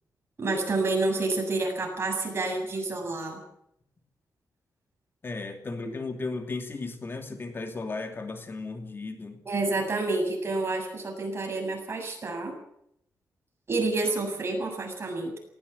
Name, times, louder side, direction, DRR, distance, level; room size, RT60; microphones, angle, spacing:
voice 1, 0.4-3.4 9.4-12.6 13.7-15.4, right 2 dB, 40° right, 2 dB, 7.6 m, -29 dB
voice 2, 5.2-9.4, left 3 dB, 35° left, 6 dB, 2.7 m, -35 dB
19.0 x 17.5 x 8.5 m, 0.74 s
cardioid pair, 105°, 7 cm